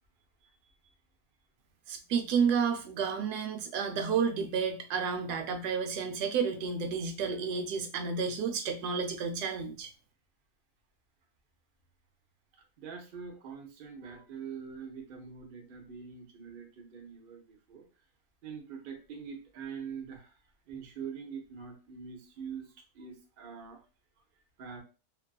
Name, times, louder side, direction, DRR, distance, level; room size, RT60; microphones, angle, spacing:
voice 1, 0.4-0.9 12.8-17.9 18.4-20.3 20.7-23.8 24.6-24.8, right 6 dB, 55° right, 2 dB, 0.6 m, -44 dB
voice 2, 1.9-9.9, right 6 dB, 90° right, 5 dB, 1.1 m, -31 dB
2.7 x 2.4 x 2.2 m, 0.34 s
omnidirectional pair, 1.6 m